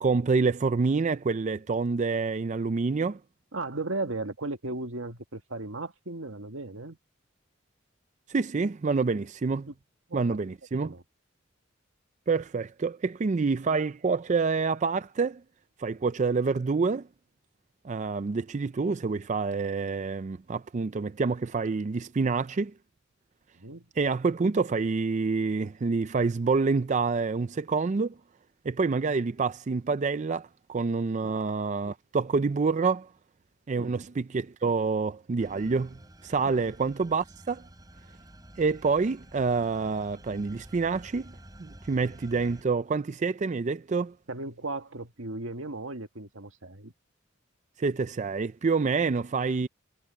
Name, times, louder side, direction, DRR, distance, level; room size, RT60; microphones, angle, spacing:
voice 1, 0.0-3.2 8.3-9.7 10.1-10.9 12.3-15.4 15.8-17.1 17.8-22.7 24.0-28.2 28.6-33.1 33.7-37.7 38.6-44.1 47.8-49.7, right 4 dB, 35° right, 0.4 m, -27 dB
voice 2, 3.5-7.0 9.7-9.8 10.1-10.4 10.8-11.0 23.6-23.9 33.7-34.0 36.4-36.6 44.3-46.9, right 2 dB, 85° right, 2.0 m, -36 dB
sound 1, 35.4-42.6, right 1 dB, 20° right, 4.8 m, -50 dB
head